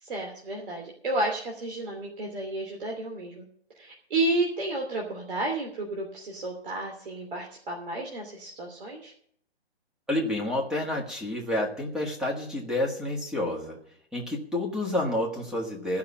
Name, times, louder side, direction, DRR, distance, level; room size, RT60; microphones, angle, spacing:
voice 1, 0.0-3.5 3.8-9.1, right 2 dB, 55° right, 1 dB, 2.9 m, -31 dB
voice 2, 10.1-13.8 14.1-16.0, left 1 dB, ahead, -1 dB, 1.5 m, -29 dB
15.0 x 5.9 x 8.6 m, 0.63 s
hypercardioid pair, 150°, 32 cm